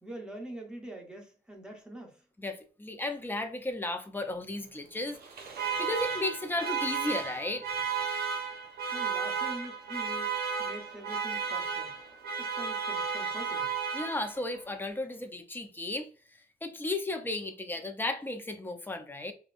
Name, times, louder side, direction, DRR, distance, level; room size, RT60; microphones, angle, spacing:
voice 1, 0.0-2.2 8.9-10.3 10.6-11.9 12.4-13.7, right 1 dB, 5° right, 1.1 m, -44 dB
voice 2, 2.4-5.2 5.8-7.7 13.9-19.3, left 2 dB, 10° left, 0.6 m, -34 dB
Alarm, 5.1-14.5, right 6 dB, 65° right, 1.0 m, -33 dB
5.2 x 2.3 x 2.5 m
cardioid pair, 115°, 17 cm